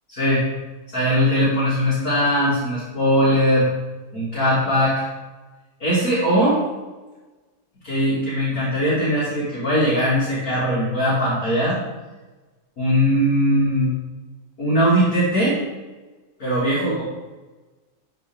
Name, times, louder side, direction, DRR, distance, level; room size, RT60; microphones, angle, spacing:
voice 1, 0.1-0.5 0.9-3.7 4.1-5.0 5.8-6.6 7.8-11.8 12.8-13.9 14.6-15.6 16.4-17.0, equal, 50° left, -9 dB, 2.1 m, -20 dB
11.5 x 4.0 x 3.4 m, 1.2 s
omnidirectional pair, 2.1 m